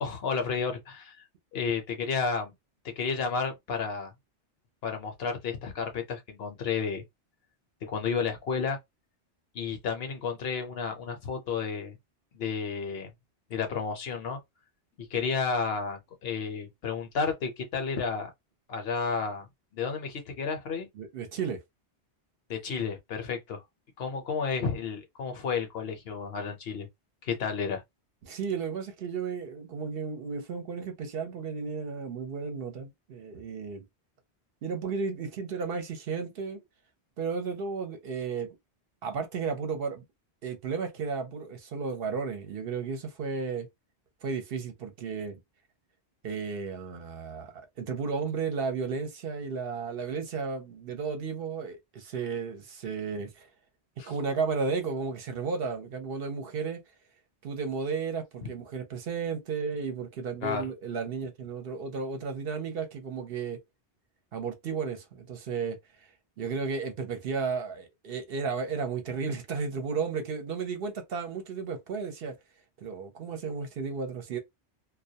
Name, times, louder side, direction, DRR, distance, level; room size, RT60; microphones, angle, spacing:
voice 1, 0.0-1.2 1.5-2.5 3.0-4.1 4.8-7.0 7.9-8.8 9.5-12.0 12.3-13.1 13.5-14.4 15.0-18.3 18.7-19.5 19.7-20.9 22.5-23.6 24.0-26.9 27.2-27.8 54.0-54.1 58.4-58.5 60.4-60.6, left 5 dB, 65° left, 0.8 m, -31 dB
voice 2, 21.0-21.6 28.2-33.8 34.6-36.6 37.2-38.5 39.0-40.0 40.4-43.7 44.2-45.4 46.2-53.5 54.0-56.8 57.4-63.6 64.3-65.8 66.4-72.4 72.8-74.4, right 5 dB, 60° right, 0.8 m, -33 dB
2.2 x 2.2 x 2.7 m
omnidirectional pair, 1.2 m